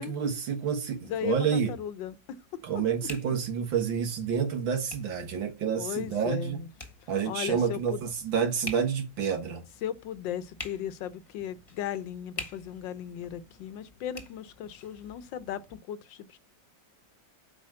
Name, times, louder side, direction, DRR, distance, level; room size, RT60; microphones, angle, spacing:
voice 1, 0.0-1.7 2.6-6.6 7.1-9.6, right 7 dB, 85° right, 2.2 m, -29 dB
sound 1, 0.6-15.8, left 2 dB, 20° left, 1.2 m, -48 dB
voice 2, 1.0-2.4 5.8-6.7 7.2-8.0 9.8-16.4, left 10 dB, 80° left, 1.4 m, -36 dB
8.5 x 5.0 x 7.6 m
omnidirectional pair, 2.0 m